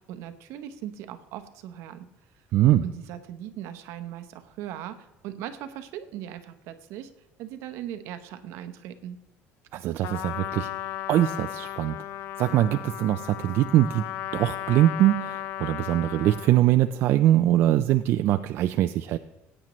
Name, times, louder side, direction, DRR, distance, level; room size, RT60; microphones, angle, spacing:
voice 1, 0.0-2.1 2.8-7.1 7.4-9.2, right 11 dB, 65° right, 10 dB, 0.9 m, -39 dB
voice 2, 2.5-2.8 9.7-10.7 11.1-12.0 12.4-14.0 14.3-19.2, right 13 dB, 50° right, 9 dB, 0.3 m, -22 dB
Trumpet, 10.0-16.6, left 14 dB, 55° left, 0.3 m, -35 dB
19.5 x 8.9 x 3.1 m, 1.0 s
cardioid pair, 165°, 5 cm